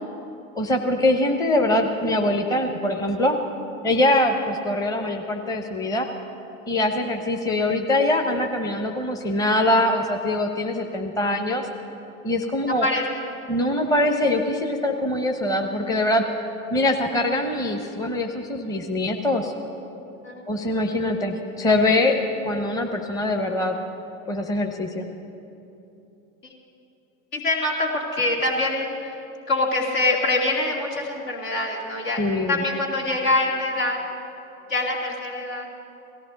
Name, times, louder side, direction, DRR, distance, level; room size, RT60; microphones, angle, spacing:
voice 1, 0.6-3.4 3.8-6.1 6.7-11.7 12.2-12.9 13.5-16.2 16.7-19.5 20.5-22.2 22.4-23.8 24.3-25.1 32.2-32.6, left 1 dB, 10° left, 3 dB, 0.8 m, -23 dB
voice 2, 20.2-20.6 27.3-29.1 29.5-32.2 32.5-34.1 34.7-35.7, left 2 dB, 70° left, -1 dB, 2.7 m, -24 dB
18.0 x 14.0 x 4.0 m, 2.9 s
hypercardioid pair, 85°, 40 cm